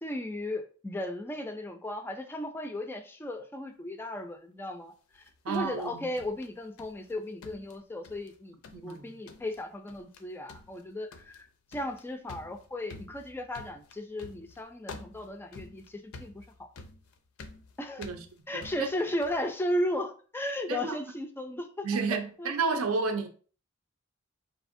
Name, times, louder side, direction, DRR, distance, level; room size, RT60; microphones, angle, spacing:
voice 1, 0.0-16.7 17.8-18.1 18.5-22.8, left 1 dB, 10° left, 0.3 m, -36 dB
sound 1, 5.1-7.1 7.4-8.4 8.6-9.0 9.3-9.6 9.9-10.2 10.5-19.5, left 3 dB, 75° left, 0.5 m, -49 dB
voice 2, 5.4-6.0 8.7-9.0 18.0-18.2 18.5-18.9 20.7-21.0 21.8-23.3, right 4 dB, 90° right, 0.6 m, -31 dB
4.2 x 2.6 x 2.5 m
head